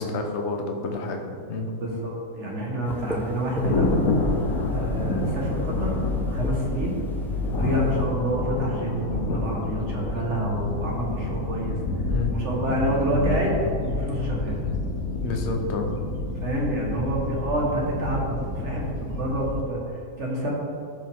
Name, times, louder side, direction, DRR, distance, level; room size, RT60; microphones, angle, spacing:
voice 1, 0.0-1.7 12.1-12.4 15.2-16.1, left 3 dB, 55° left, 3 dB, 1.1 m, -29 dB
voice 2, 1.8-3.9 4.7-6.0 6.3-7.0 7.6-11.8 12.3-14.6 16.4-20.5, right 1 dB, 50° right, -2 dB, 1.7 m, -28 dB
sound 1, 2.8-8.1, equal, ahead, 0.5 m, -39 dB
Thunder, 3.6-19.6, left 2 dB, 85° left, 1.4 m, -28 dB
13.5 x 5.5 x 3.5 m, 2.5 s
omnidirectional pair, 1.5 m